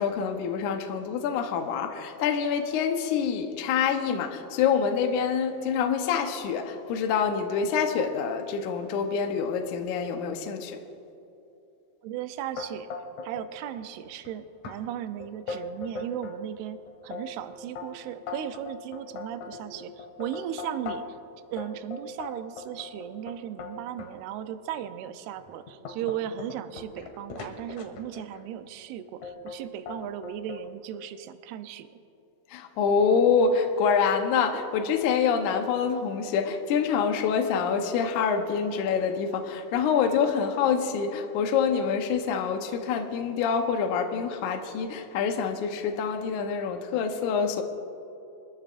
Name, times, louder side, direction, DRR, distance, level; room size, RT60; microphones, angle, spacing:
voice 1, 0.0-10.8 32.5-47.6, left 6 dB, 75° left, 5 dB, 1.8 m, -26 dB
voice 2, 12.0-12.9 13.2-21.1 21.5-31.9, right 10 dB, 80° right, 9 dB, 2.6 m, -36 dB
sound 1, 12.6-13.5 13.8-14.3 14.6-14.8 15.2-16.4 16.9-21.2 21.6-24.1 24.7-24.9 25.4-28.4 29.2-29.6 29.9-30.6, left 4 dB, 60° left, 2.2 m, -39 dB
23.5 x 14.5 x 2.5 m, 2.8 s
omnidirectional pair, 4.7 m